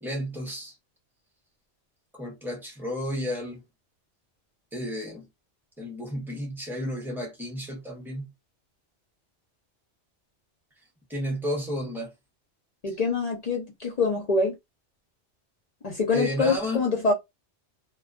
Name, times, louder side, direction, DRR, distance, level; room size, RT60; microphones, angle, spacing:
voice 1, 0.0-0.7 2.1-3.6 4.7-5.3 5.8-8.3 11.1-12.1 12.9-13.0 16.1-16.8, equal, ahead, 0.6 m, -32 dB
voice 2, 12.8-14.5 15.8-17.1, left 3 dB, 45° left, 0.5 m, -25 dB
2.3 x 2.2 x 2.4 m
omnidirectional pair, 1.2 m